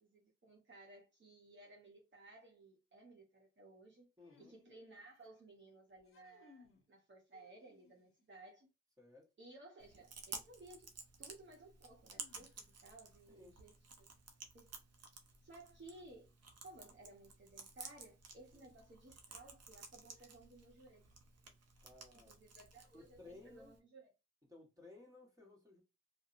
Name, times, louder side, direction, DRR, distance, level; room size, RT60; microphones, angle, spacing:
voice 1, 0.0-4.0 4.4-8.7 9.4-10.9 11.2-12.5 12.8-14.1 14.5-14.7 15.4-16.3 16.6-21.1 22.2-24.1, right 2 dB, 40° right, 1.0 m, -58 dB
sound 1, 4.2-5.4 6.0-6.9 7.3-8.2 10.2-10.3 12.1-13.0, left 5 dB, 50° left, 0.7 m, -67 dB
voice 2, 4.2-4.5 9.0-9.3 13.3-13.6 18.5-18.7 21.8-22.4 22.9-23.7 24.5-25.8, left 2 dB, 10° right, 1.3 m, -59 dB
Chewing mastication, 9.8-23.8, right 4 dB, 60° right, 0.7 m, -54 dB
2.7 x 2.2 x 2.5 m
cardioid pair, 60°, 29 cm